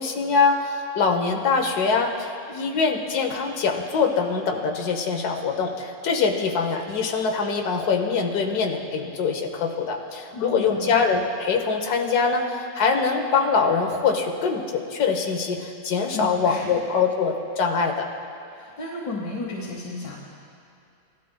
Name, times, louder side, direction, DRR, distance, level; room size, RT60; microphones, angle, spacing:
voice 1, 0.0-18.1, left 5 dB, 65° left, 3 dB, 1.5 m, -23 dB
voice 2, 10.3-11.0 16.1-16.8 18.5-20.2, left 2 dB, 85° left, -3 dB, 1.8 m, -33 dB
18.5 x 12.5 x 2.2 m, 2.5 s
omnidirectional pair, 1.8 m